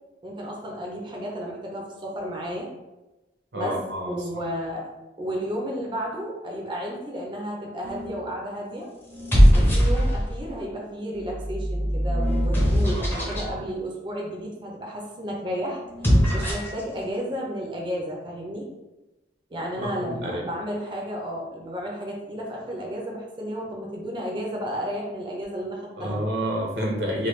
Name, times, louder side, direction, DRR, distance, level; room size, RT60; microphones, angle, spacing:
voice 1, 0.2-2.7 3.5-3.8 4.1-4.9 5.2-8.9 9.5-15.8 16.3-18.7 19.5-26.2, equal, 30° right, -2 dB, 0.5 m, -32 dB
voice 2, 3.5-4.4 12.8-13.6 19.8-20.4 26.0-27.3, equal, 85° right, -1 dB, 0.7 m, -30 dB
sound 1, 7.8-8.3 9.1-10.4 11.2-13.5 15.8-16.8, equal, 10° left, 0.7 m, -21 dB
3.1 x 2.2 x 3.1 m, 1.1 s
head